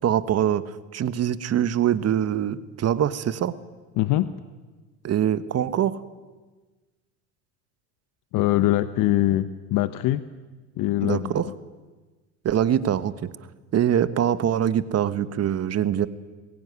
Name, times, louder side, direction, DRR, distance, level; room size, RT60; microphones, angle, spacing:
voice 1, 0.0-3.5 5.0-6.0 11.0-11.5 12.4-13.1 13.7-16.1, right 10 dB, 45° right, 14 dB, 1.3 m, -23 dB
voice 2, 4.0-4.3 8.3-10.2 10.8-11.5, left 15 dB, 60° left, 13 dB, 1.0 m, -23 dB
22.5 x 16.0 x 9.8 m, 1.3 s
supercardioid pair, 85°, 36 cm